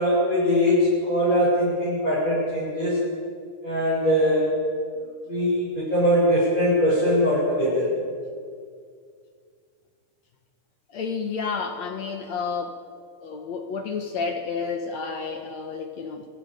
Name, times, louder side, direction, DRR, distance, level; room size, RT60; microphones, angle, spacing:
voice 1, 0.0-3.0 3.6-4.5 5.3-7.9, equal, 10° left, -8 dB, 7.8 m, -21 dB
voice 2, 10.9-12.8 13.2-16.3, left 5 dB, 60° left, 5 dB, 1.9 m, -30 dB
25.5 x 25.5 x 5.3 m, 2.1 s
omnidirectional pair, 4.7 m